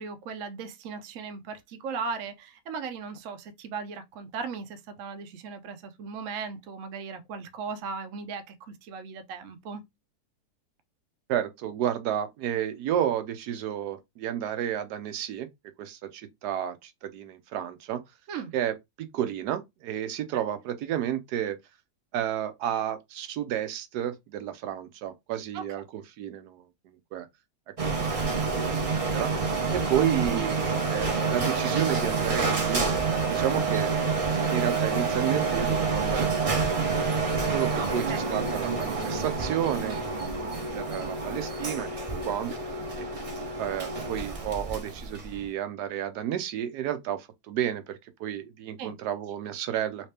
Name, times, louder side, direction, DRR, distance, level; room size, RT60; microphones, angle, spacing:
voice 1, 0.0-9.8 18.3-18.5 20.3-20.4 25.5-25.6 30.3-30.4 37.8-38.3 42.5-42.6 48.8-48.9, right 5 dB, 65° right, 0.9 m, -37 dB
voice 2, 11.3-15.5 15.8-18.0 18.5-21.6 22.1-27.3 28.0-32.8 33.3-33.9 34.2-36.9 37.5-41.9 42.2-43.1 43.6-50.1, right 10 dB, 90° right, 1.2 m, -32 dB
Printer, 27.8-45.5, right 4 dB, 35° right, 0.5 m, -28 dB
3.2 x 2.9 x 3.3 m
omnidirectional pair, 1.7 m